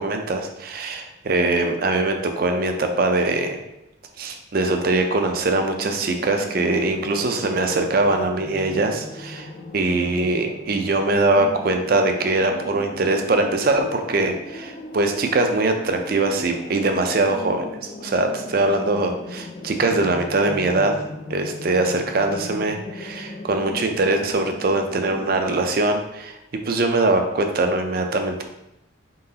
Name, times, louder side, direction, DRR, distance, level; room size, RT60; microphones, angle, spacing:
voice 1, 0.0-3.6 4.2-21.0 21.3-26.4 26.7-28.4, right 2 dB, 45° right, 5 dB, 0.4 m, -22 dB
sound 1, 5.8-25.7, left 2 dB, 30° left, 0.3 m, -38 dB
3.8 x 3.8 x 2.8 m, 0.86 s
head